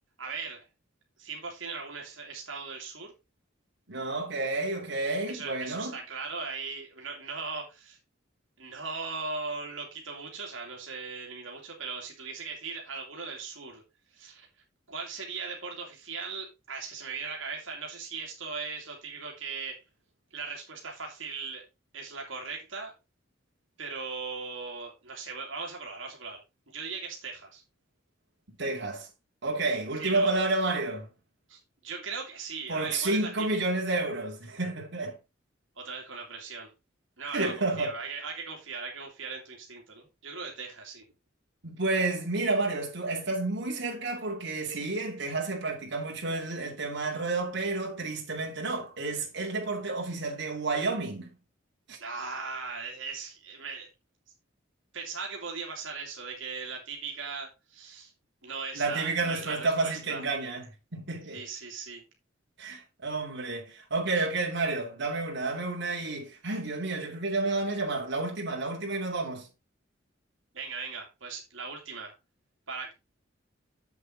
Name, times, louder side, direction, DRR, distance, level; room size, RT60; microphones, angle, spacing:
voice 1, 0.2-0.7 1.2-3.1 5.3-8.0 8.6-13.8 14.1-14.5 14.9-19.8 20.3-21.6 21.9-22.9 23.8-26.4 26.7-27.6 30.0-30.3 31.5-33.7 35.8-36.7 37.2-41.0 52.0-53.9 54.9-58.1 58.4-60.2 61.3-62.0 64.1-64.2 70.5-72.1 72.7-72.9, right 4 dB, 80° right, 2.7 m, -38 dB
voice 2, 3.9-6.0 28.6-29.1 29.4-31.1 32.7-35.2 37.3-38.0 41.6-51.3 51.9-52.0 58.7-61.4 62.6-69.5, right 3 dB, 65° right, 2.8 m, -30 dB
7.8 x 7.7 x 3.8 m
head